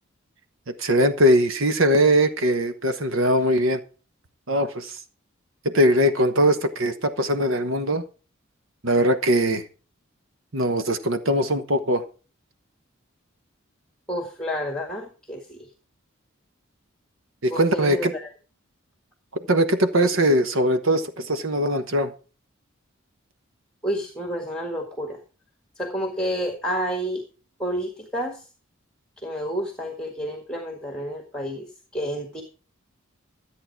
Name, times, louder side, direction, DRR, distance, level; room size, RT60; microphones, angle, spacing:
voice 1, 0.8-3.8 4.5-5.0 5.6-8.0 8.8-9.6 10.5-12.0 17.4-18.1 19.5-22.1, equal, 70° right, 9 dB, 1.2 m, -21 dB
voice 2, 14.1-15.6 17.5-18.3 23.8-25.2 25.8-27.2 27.6-28.5 29.2-31.7 31.9-32.4, equal, 5° left, 3 dB, 1.7 m, -30 dB
14.0 x 8.7 x 4.6 m, 0.36 s
head